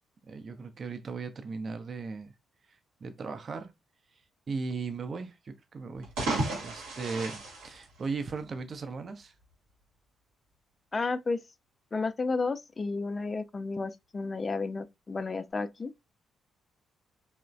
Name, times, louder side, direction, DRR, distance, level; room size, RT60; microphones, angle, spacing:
voice 1, 0.3-2.3 3.0-3.7 4.5-6.1 6.6-9.3, right 4 dB, 45° right, 0.5 m, -37 dB
sound 1, 5.9-8.6, right 2 dB, 75° right, 0.9 m, -34 dB
voice 2, 10.9-11.4 11.9-15.9, left 3 dB, 35° left, 0.3 m, -32 dB
3.0 x 2.1 x 2.4 m
hypercardioid pair, 40°, 0 cm